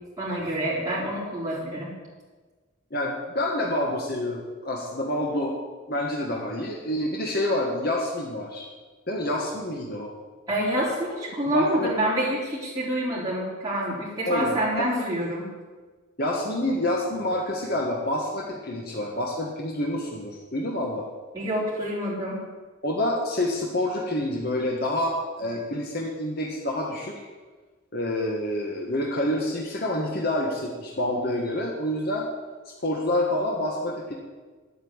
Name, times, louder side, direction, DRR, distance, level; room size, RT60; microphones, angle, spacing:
voice 1, 0.2-1.9 10.5-15.4 21.3-22.4, right 1 dB, 15° right, -7 dB, 4.2 m, -27 dB
voice 2, 2.9-5.6 5.9-8.7 9.1-10.1 11.4-11.9 14.3-14.6 16.2-21.1 22.8-27.2 27.9-32.3 32.7-34.2, left 1 dB, 50° left, -1 dB, 1.6 m, -27 dB
9.4 x 8.4 x 9.6 m, 1.4 s
head